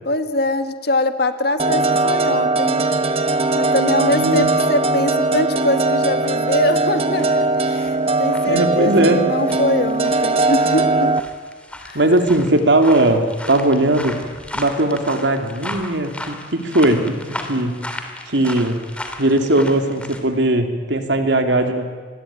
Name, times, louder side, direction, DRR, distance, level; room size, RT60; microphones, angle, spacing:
voice 1, 0.0-2.8 3.6-11.2 11.8-12.0, left 1 dB, 60° left, 9 dB, 1.7 m, -22 dB
sound 1, 1.6-11.2, right 2 dB, 35° right, 1.2 m, -19 dB
voice 2, 4.1-4.5 8.5-9.2 11.9-14.2 14.5-17.1 17.5-17.7 18.3-18.8 19.2-21.9, right 1 dB, 85° right, 5 dB, 3.0 m, -18 dB
sound 2, 7.1-20.2, left 1 dB, 5° left, 2.7 m, -35 dB
27.0 x 21.5 x 9.0 m, 1.5 s
head